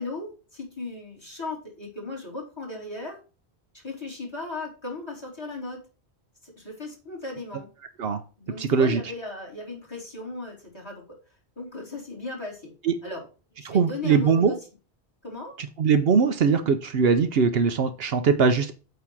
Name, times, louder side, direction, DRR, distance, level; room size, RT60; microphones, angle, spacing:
voice 1, 0.0-3.2 3.7-5.9 6.4-7.7 8.4-11.2 11.6-12.7 13.0-13.3 13.5-14.6 15.2-15.6, left 3 dB, 25° left, -1 dB, 2.7 m, -36 dB
voice 2, 8.6-9.0 12.8-12.9 13.7-14.5 15.8-18.7, right 5 dB, 70° right, 9 dB, 0.9 m, -21 dB
8.4 x 2.9 x 5.9 m, 0.34 s
omnidirectional pair, 1.1 m